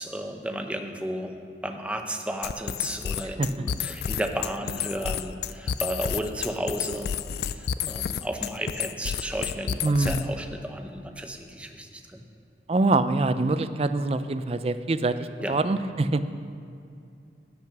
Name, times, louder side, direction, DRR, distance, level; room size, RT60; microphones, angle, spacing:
voice 1, 0.0-1.4 1.6-7.1 7.5-12.2 15.4-15.5, right 1 dB, 5° right, 4 dB, 0.7 m, -33 dB
sound 1, 2.4-10.4, left 8 dB, 60° left, 0.3 m, -30 dB
voice 2, 9.8-10.3 12.7-16.2, right 2 dB, 35° right, 12 dB, 0.4 m, -24 dB
16.0 x 6.0 x 5.9 m, 2.5 s
head